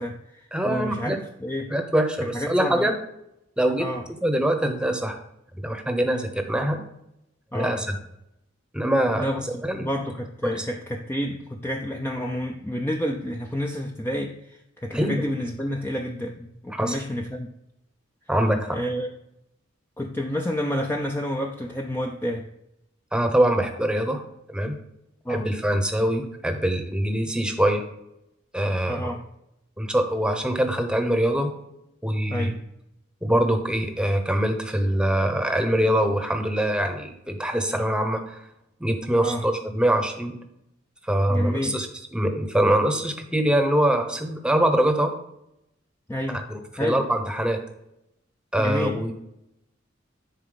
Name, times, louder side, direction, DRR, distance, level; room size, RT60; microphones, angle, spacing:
voice 1, 0.0-1.7 2.3-2.9 3.8-4.1 7.5-7.8 9.2-17.5 18.7-19.1 20.0-22.4 25.2-25.5 28.9-29.2 32.3-32.6 39.2-39.4 41.3-41.8 46.1-46.4 46.7-47.1 48.6-49.0, equal, 10° left, 2 dB, 0.5 m, -29 dB
voice 2, 0.5-1.2 1.7-2.9 3.6-3.9 4.2-5.2 5.6-6.8 7.5-7.9 8.7-9.3 9.6-9.9 10.4-10.6 14.9-15.2 16.7-17.0 18.3-18.8 23.1-24.2 24.5-24.8 25.3-27.8 28.5-29.1 29.8-31.5 32.0-32.5 33.2-38.4 38.8-40.3 41.1-45.1 46.3-46.4 46.8-47.6 48.5-49.1, right 1 dB, 5° right, 6 dB, 0.9 m, -23 dB
10.0 x 4.2 x 3.9 m, 0.83 s
head